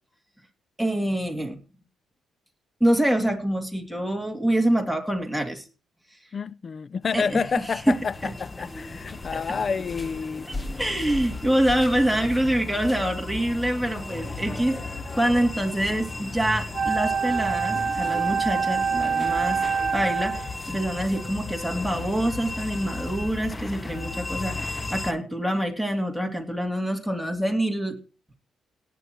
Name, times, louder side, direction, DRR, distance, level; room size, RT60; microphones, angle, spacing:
voice 1, 0.8-1.6 2.8-5.6 7.1-8.0 8.2-8.3 9.3-9.6 10.5-14.8 15.1-19.6 19.9-28.0, right 1 dB, ahead, 2.7 m, -25 dB
voice 2, 6.3-10.5, left 5 dB, 45° left, 0.5 m, -29 dB
sound 1, 7.0-25.1, left 3 dB, 20° left, 1.0 m, -35 dB
Wind instrument woodwind instrument, 16.7-20.5, right 6 dB, 45° right, 1.9 m, -25 dB
17.5 x 9.3 x 3.0 m
cardioid pair, 90°, 0 cm